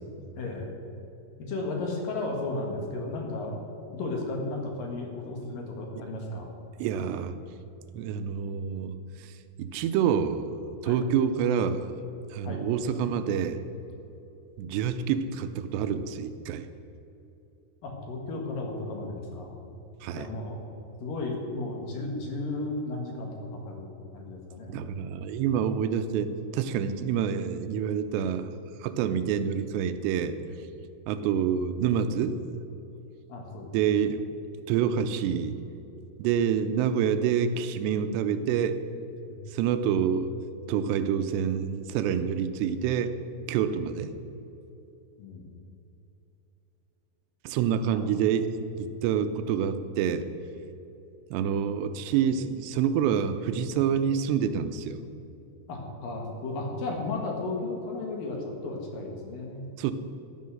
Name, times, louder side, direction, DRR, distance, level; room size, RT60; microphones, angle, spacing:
voice 1, 0.4-0.7 1.5-3.6 3.9-6.5 10.8-11.0 12.4-12.6 17.8-19.5 20.1-20.6 21.0-23.3 23.7-24.7 33.3-33.9 45.2-45.5 47.9-48.0 55.7-59.6, left 2 dB, 60° left, 1 dB, 3.0 m, -34 dB
voice 2, 6.8-7.3 7.9-9.3 9.6-10.5 10.8-11.9 12.3-13.6 14.6-16.7 20.0-20.3 24.7-28.5 28.8-30.4 31.1-32.4 33.7-34.2 34.7-35.5 36.2-38.8 39.5-40.3 40.7-43.2 43.5-44.1 47.4-48.5 48.8-50.3 51.3-55.0 59.8-59.9, right 8 dB, 90° right, 10 dB, 2.8 m, -27 dB
12.5 x 9.4 x 6.4 m, 2.9 s
omnidirectional pair, 4.9 m